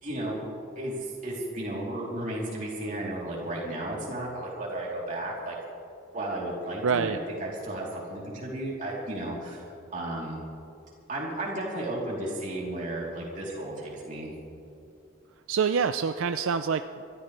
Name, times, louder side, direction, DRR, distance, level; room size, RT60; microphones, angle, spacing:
voice 1, 0.0-0.4 0.7-5.5 6.1-10.4 11.1-14.3, right 1 dB, 40° right, -4 dB, 3.4 m, -34 dB
voice 2, 6.8-7.2 15.5-17.0, right 6 dB, 75° right, 9 dB, 0.4 m, -26 dB
25.5 x 12.5 x 3.4 m, 2.7 s
head